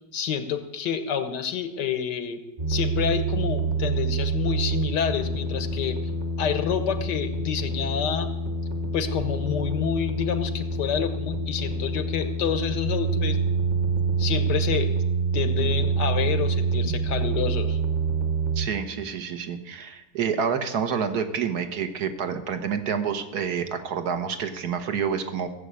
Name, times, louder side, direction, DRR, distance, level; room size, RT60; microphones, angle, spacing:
voice 1, 0.1-2.4 2.7-6.0 6.4-8.3 8.9-13.4 14.2-14.9 15.3-17.8, left 7 dB, 90° left, 9 dB, 1.7 m, -28 dB
sound 1, 2.6-18.7, right 3 dB, 35° right, 1.3 m, -26 dB
voice 2, 18.5-25.5, right 7 dB, 65° right, 8 dB, 1.7 m, -28 dB
16.5 x 7.6 x 8.3 m, 1.0 s
omnidirectional pair, 1.8 m